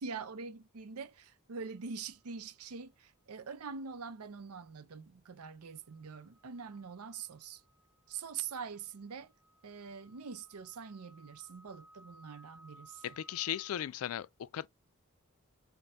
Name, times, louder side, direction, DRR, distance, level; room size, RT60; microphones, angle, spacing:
voice 1, 0.0-7.6 8.1-9.3 9.6-13.2, right 5 dB, 90° right, 0.6 m, -44 dB
sound 1, 1.6-1.9 5.6-13.9, equal, 5° right, 0.4 m, -62 dB
voice 2, 13.0-14.7, left 10 dB, 75° left, 0.3 m, -37 dB
4.2 x 2.1 x 3.6 m
head